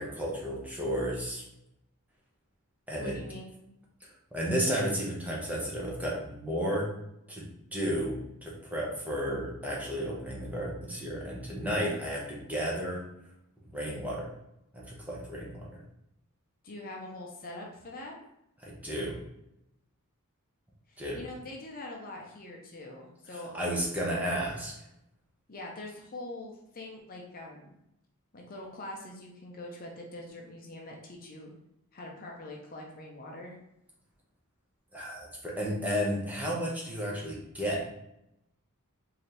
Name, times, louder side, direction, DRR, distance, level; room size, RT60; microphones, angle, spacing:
voice 1, 0.0-1.4 2.9-3.2 4.3-6.9 7.3-7.4 7.7-13.0 13.7-14.3 14.7-15.8 18.6-19.2 21.0-21.2 23.5-24.7 34.9-37.8, equal, 5° right, -4 dB, 0.8 m, -32 dB
voice 2, 3.0-3.5 16.6-18.2 20.9-23.5 25.5-27.7 28.3-31.5 31.9-33.6, left 1 dB, 40° left, 0 dB, 0.7 m, -43 dB
4.2 x 2.8 x 3.3 m, 0.81 s
head